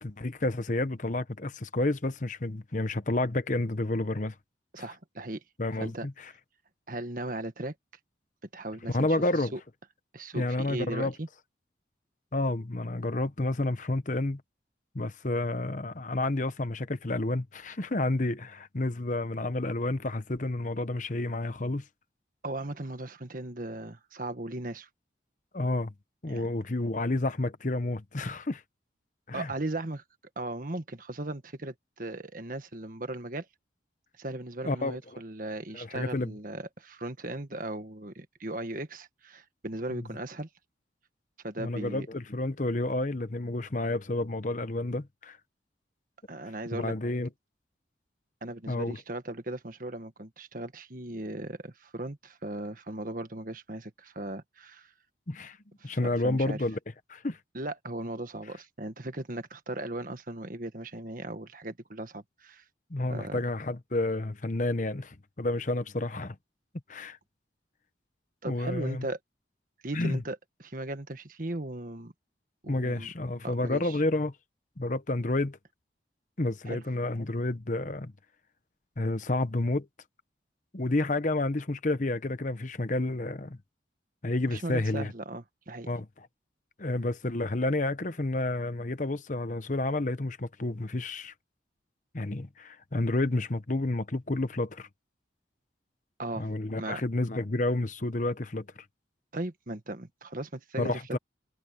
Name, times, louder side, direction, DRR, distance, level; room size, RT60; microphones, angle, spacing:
voice 1, 0.0-4.3 5.6-6.3 8.9-9.5 10.3-11.1 12.3-14.4 14.9-21.8 25.5-25.9 26.2-28.6 29.3-29.5 34.6-35.0 35.7-36.3 39.9-40.1 41.6-45.4 46.7-47.3 48.7-49.0 55.3-55.6 55.8-56.8 57.1-57.4 62.9-66.4 66.9-67.2 68.5-69.1 69.9-70.2 72.7-74.3 74.8-75.6 76.4-78.1 79.0-79.9 80.7-83.6 84.2-85.1 85.9-86.3 86.8-91.3 92.1-94.9 96.4-98.7 100.8-101.2, left 2 dB, 45° left, 1.0 m, -30 dB
voice 2, 4.7-5.4 5.8-6.1 6.9-7.7 8.5-9.1 9.5-9.6 10.1-11.3 22.4-24.9 26.3-26.4 29.3-30.0 30.3-33.5 34.2-40.5 41.4-42.1 46.3-46.9 48.4-54.9 55.8-56.0 56.2-56.6 57.5-62.6 63.1-63.4 68.4-69.2 69.8-72.1 72.6-73.1 73.4-74.0 76.7-76.8 84.5-85.9 96.2-96.5 96.8-97.0 99.3-101.0, right 1 dB, 45° right, 1.6 m, -37 dB
head